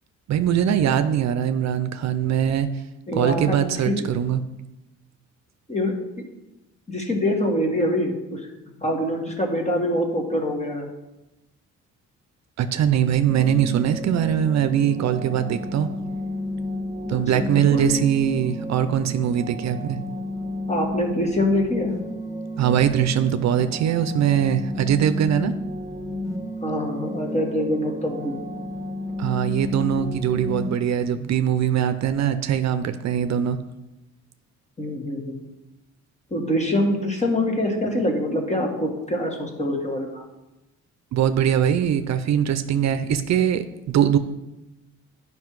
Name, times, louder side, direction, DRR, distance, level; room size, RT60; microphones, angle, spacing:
voice 1, 0.3-2.7 3.1-4.4 12.6-15.9 17.1-20.0 22.6-25.6 29.2-33.6 41.1-44.2, right 9 dB, 65° right, 10 dB, 0.6 m, -22 dB
voice 2, 3.1-4.1 5.7-6.0 6.9-8.5 8.8-10.9 17.1-17.5 17.7-18.0 20.7-21.9 26.6-28.3 34.8-35.4 36.3-40.2, left 1 dB, 25° left, 2 dB, 1.8 m, -25 dB
sound 1, 13.3-30.7, equal, 10° right, 1.2 m, -32 dB
9.4 x 5.4 x 4.7 m, 0.96 s
cardioid pair, 90°, 30 cm